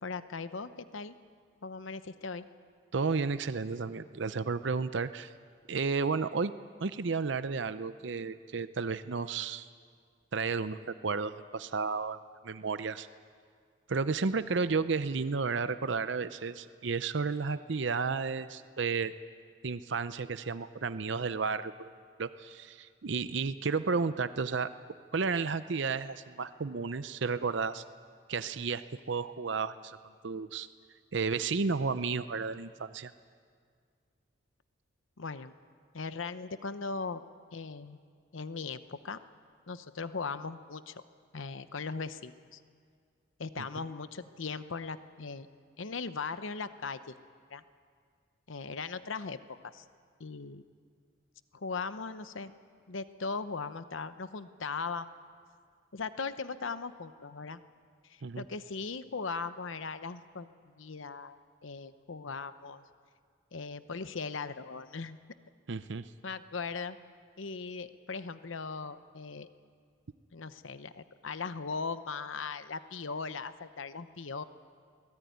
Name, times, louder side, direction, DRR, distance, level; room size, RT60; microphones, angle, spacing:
voice 1, 0.0-1.2 1.6-2.5 35.2-35.5 35.9-37.2 37.5-38.0 38.3-39.2 39.7-41.0 41.3-42.6 43.4-45.5 45.8-47.2 47.5-47.6 48.5-49.8 50.2-50.6 51.5-52.5 52.9-55.1 55.9-57.6 58.0-62.8 63.5-65.2 66.2-67.0 67.4-69.5 70.3-74.4, left 4 dB, 85° left, 12 dB, 0.8 m, -39 dB
voice 2, 2.9-5.3 5.7-6.5 6.8-9.7 10.3-12.2 12.4-13.1 13.9-19.1 19.6-21.7 22.2-24.7 25.1-27.8 28.3-30.0 30.2-30.7 31.1-33.1 43.6-43.7 58.2-58.4 65.7-66.0, right 4 dB, 70° right, 12 dB, 0.6 m, -32 dB
23.5 x 19.5 x 9.4 m, 2.1 s
head